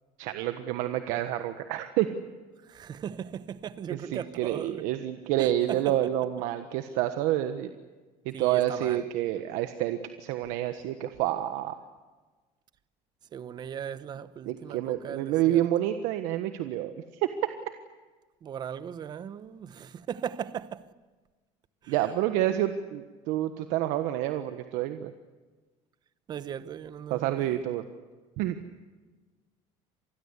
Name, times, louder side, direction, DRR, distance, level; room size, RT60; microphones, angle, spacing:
voice 1, 0.2-2.1 3.9-7.7 8.2-11.8 14.5-16.9 17.2-17.3 21.9-25.1 27.1-27.8 28.4-28.6, right 13 dB, 80° right, 1.4 m, -28 dB
voice 2, 2.6-4.8 5.4-5.9 8.3-9.0 13.3-15.7 18.4-20.9 21.8-22.0 26.3-27.6, right 8 dB, 35° right, 1.0 m, -38 dB
27.0 x 20.0 x 8.3 m
cardioid pair, 155°, 13 cm